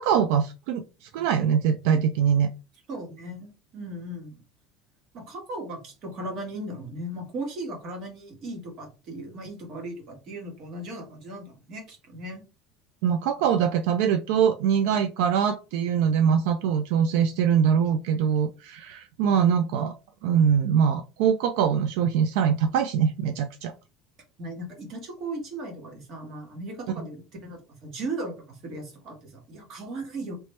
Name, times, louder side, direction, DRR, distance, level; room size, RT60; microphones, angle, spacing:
voice 1, 0.0-2.5 13.0-19.9 20.2-23.7, right 7 dB, 75° right, 8 dB, 0.3 m, -23 dB
voice 2, 2.9-4.4 5.1-12.4 24.4-30.4, right 1 dB, 40° right, 2 dB, 1.3 m, -37 dB
3.0 x 2.9 x 3.2 m, 0.31 s
cardioid pair, 165°, 0 cm